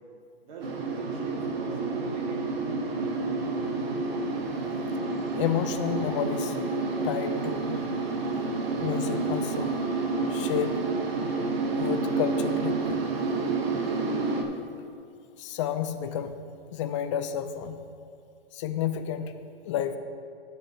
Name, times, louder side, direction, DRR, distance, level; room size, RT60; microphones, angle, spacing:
voice 1, 0.4-2.7, right 3 dB, 50° right, -2 dB, 2.0 m, -44 dB
sound 1, 0.6-14.4, right 3 dB, 70° right, 1.3 m, -29 dB
voice 2, 5.4-6.6 7.0-7.8 8.8-9.7 10.3-10.8 11.8-13.0 15.4-16.3 16.7-17.8 18.5-19.3 19.7-20.0, left 9 dB, 30° left, 9 dB, 0.4 m, -30 dB
12.0 x 8.1 x 2.8 m, 2.4 s
hypercardioid pair, 145°, 31 cm